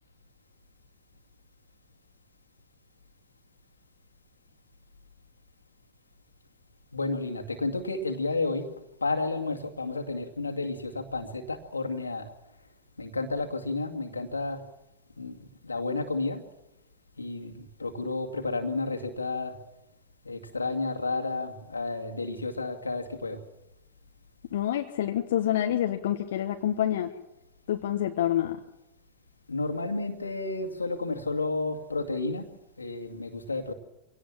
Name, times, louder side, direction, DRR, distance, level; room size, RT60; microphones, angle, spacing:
voice 1, 6.9-8.7 9.0-12.3 13.0-14.6 15.2-16.4 17.2-19.5 20.2-23.4 29.5-32.5 32.8-33.7, left 3 dB, 80° left, 5 dB, 2.3 m, -31 dB
voice 2, 24.5-27.1 27.7-28.6, left 11 dB, 60° left, 5 dB, 1.3 m, -27 dB
25.5 x 18.0 x 7.5 m, 0.92 s
figure-of-eight pair, 90°, 0 cm